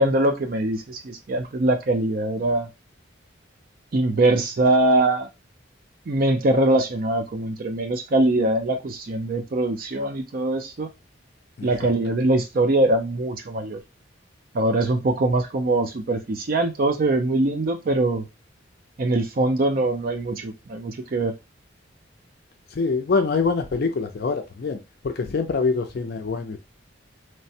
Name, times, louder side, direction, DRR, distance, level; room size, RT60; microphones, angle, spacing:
voice 1, 0.0-2.7 3.9-5.3 6.1-10.9 11.6-13.8 14.5-18.2 19.0-21.3, right 2 dB, 45° right, 0.4 m, -22 dB
voice 2, 11.6-11.9 22.7-26.6, left 4 dB, 50° left, 0.4 m, -25 dB
3.2 x 2.1 x 2.7 m
head